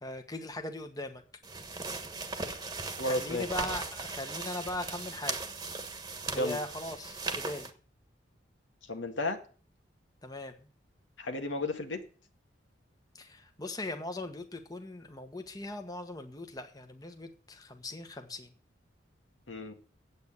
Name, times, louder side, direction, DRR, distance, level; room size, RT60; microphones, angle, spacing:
voice 1, 0.0-1.2 3.0-5.5 6.3-7.7 10.2-10.7 13.1-18.5, left 2 dB, 20° left, 6 dB, 1.2 m, -39 dB
sound 1, 1.4-7.7, right 3 dB, 20° right, 1.4 m, -38 dB
voice 2, 3.0-3.5 6.4-6.6 8.9-9.4 11.2-12.0 19.5-19.7, left 2 dB, 90° left, 4 dB, 2.0 m, -33 dB
8.8 x 8.4 x 8.7 m, 0.40 s
head